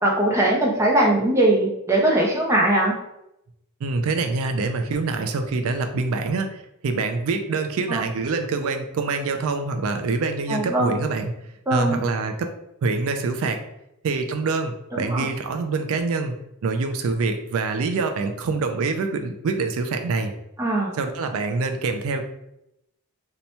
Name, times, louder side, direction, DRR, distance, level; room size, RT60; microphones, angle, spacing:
voice 1, 0.0-2.9 7.9-8.0 10.5-11.0 11.7-12.0 14.9-15.3 20.6-20.9, right 1 dB, 15° right, -2 dB, 0.5 m, -20 dB
voice 2, 3.8-11.3 11.7-12.5 12.8-13.6 14.0-16.4 16.6-20.3 21.0-22.2, right 3 dB, 70° right, 6 dB, 0.3 m, -25 dB
2.8 x 2.2 x 4.1 m, 0.84 s
head